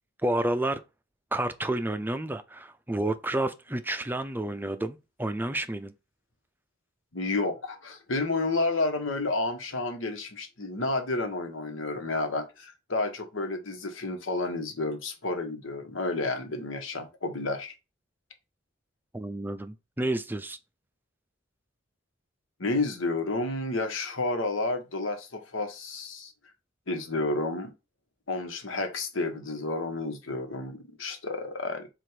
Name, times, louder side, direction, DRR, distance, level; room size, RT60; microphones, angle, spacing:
voice 1, 0.2-0.8 1.3-5.9 19.1-20.6, right 1 dB, 10° right, 0.5 m, -30 dB
voice 2, 7.1-17.7 22.6-26.3 26.9-27.7 28.3-31.9, left 2 dB, 80° left, 1.3 m, -31 dB
7.6 x 2.5 x 5.1 m
head